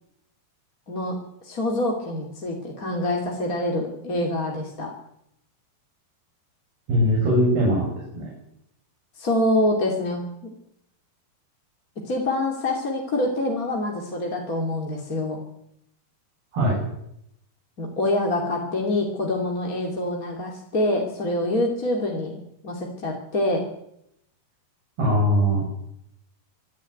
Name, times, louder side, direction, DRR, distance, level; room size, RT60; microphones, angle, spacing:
voice 1, 1.4-4.9 9.2-10.5 12.0-15.4 17.8-23.6, left 1 dB, 25° left, 0 dB, 2.7 m, -26 dB
voice 2, 6.9-7.8 8.1-8.3 16.5-16.8 25.0-25.6, equal, 80° right, -3 dB, 9.3 m, -20 dB
25.5 x 11.0 x 9.4 m, 0.78 s
omnidirectional pair, 4.5 m